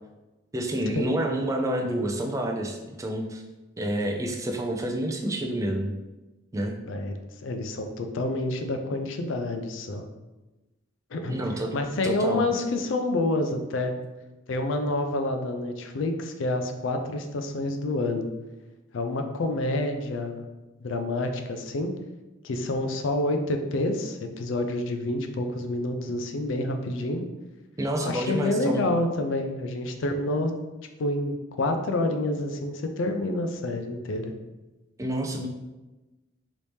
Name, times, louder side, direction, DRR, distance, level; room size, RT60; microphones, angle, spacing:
voice 1, 0.5-3.4 3.8-5.9 6.5-6.8 11.3-11.7 12.0-12.4 27.8-28.8 35.0-35.5, right 1 dB, 15° right, 2 dB, 0.3 m, -28 dB
voice 2, 6.8-7.2 7.4-10.0 11.1-11.4 11.7-13.9 14.5-18.3 18.9-20.4 20.8-21.9 22.4-27.2 28.0-30.5 31.0-34.3, left 2 dB, 75° left, 5 dB, 0.4 m, -28 dB
3.0 x 2.7 x 3.4 m, 1.1 s
head